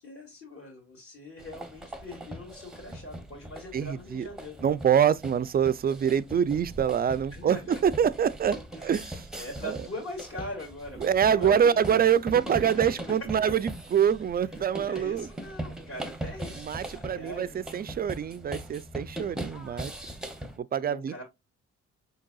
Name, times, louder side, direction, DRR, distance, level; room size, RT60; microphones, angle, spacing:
voice 1, 0.0-4.6 7.3-7.8 8.8-9.0 9.4-11.0 11.3-12.0 12.8-13.2 14.9-16.7 16.9-17.6 20.8-21.2, left 1 dB, 50° left, 2.2 m, -41 dB
sound 1, 1.4-20.6, right 1 dB, ahead, 0.7 m, -40 dB
voice 2, 3.7-4.3 4.6-9.2 9.6-9.8 11.0-15.3 16.6-19.9 20.6-21.2, right 8 dB, 30° right, 0.4 m, -25 dB
5.2 x 3.8 x 2.3 m
cardioid pair, 90°, 30 cm